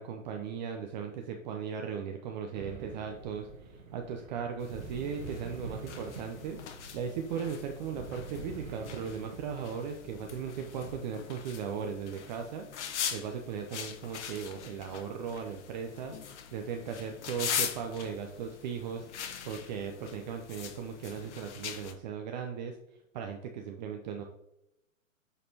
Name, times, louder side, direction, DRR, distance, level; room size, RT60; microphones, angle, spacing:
voice 1, 0.0-16.1 16.5-19.1 19.4-22.8 23.1-24.2, right 7 dB, 35° right, 3 dB, 0.6 m, -37 dB
sound 1, 2.5-11.0, right 4 dB, 85° right, 1.4 m, -46 dB
sound 2, 4.6-21.9, left 8 dB, 60° left, 1.0 m, -41 dB
8.4 x 4.2 x 2.8 m, 0.81 s
hypercardioid pair, 125°, 40 cm